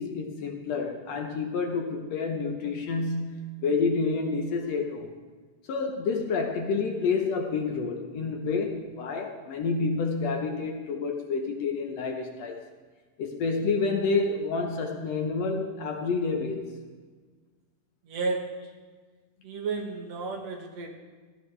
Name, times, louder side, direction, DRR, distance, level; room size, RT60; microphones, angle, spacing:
voice 1, 0.0-5.1 5.7-12.6 13.2-16.7, left 4 dB, 70° left, 3 dB, 1.9 m, -29 dB
voice 2, 18.0-18.7 19.4-20.9, right 4 dB, 65° right, 3 dB, 2.3 m, -32 dB
15.5 x 14.0 x 3.3 m, 1.4 s
omnidirectional pair, 3.5 m